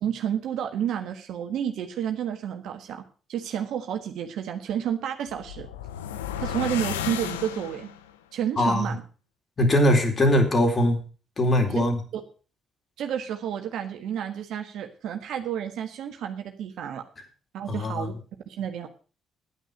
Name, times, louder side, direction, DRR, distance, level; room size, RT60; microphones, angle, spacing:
voice 1, 0.0-3.0 3.3-5.7 6.4-7.9 8.3-9.0 11.7-11.8 12.1-12.2 13.0-17.0 17.5-18.1 18.5-18.9, right 9 dB, 65° right, 5 dB, 1.4 m, -30 dB
sound 1, 5.3-8.1, left 9 dB, 85° left, 0.8 m, -33 dB
voice 2, 8.6-8.9 9.6-11.0 11.4-12.0 17.7-18.1, left 1 dB, 35° left, 4 dB, 4.0 m, -21 dB
11.0 x 9.3 x 6.5 m, 0.37 s
hypercardioid pair, 50°, 0 cm